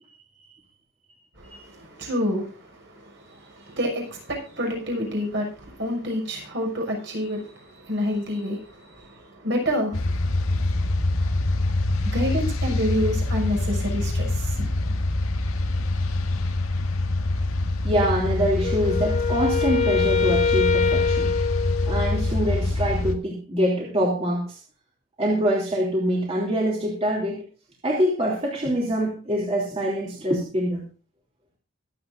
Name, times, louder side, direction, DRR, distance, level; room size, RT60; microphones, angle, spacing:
voice 1, 1.4-10.8 12.1-14.7, equal, 55° right, 6.4 m, -29 dB
sound 1, 9.9-23.1, left 2 dB, 80° left, 1.7 m, -25 dB
voice 2, 17.8-21.3 21.9-24.6 25.2-27.4 27.8-30.8, equal, 30° right, 3.1 m, -24 dB
Wind instrument woodwind instrument, 18.6-22.5, left 5 dB, 30° left, 0.8 m, -24 dB
24.0 x 8.6 x 2.6 m
head